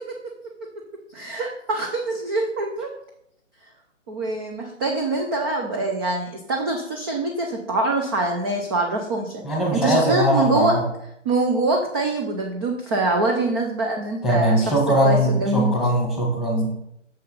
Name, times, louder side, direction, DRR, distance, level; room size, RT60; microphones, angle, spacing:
voice 1, 1.1-2.9 4.1-9.4 9.7-10.8 11.3-14.7 15.0-15.7, right 2 dB, 20° right, 1 dB, 0.5 m, -24 dB
voice 2, 9.4-10.8 14.2-16.7, equal, ahead, -1 dB, 1.6 m, -21 dB
6.7 x 5.6 x 5.4 m, 0.76 s
figure-of-eight pair, 145°, 37 cm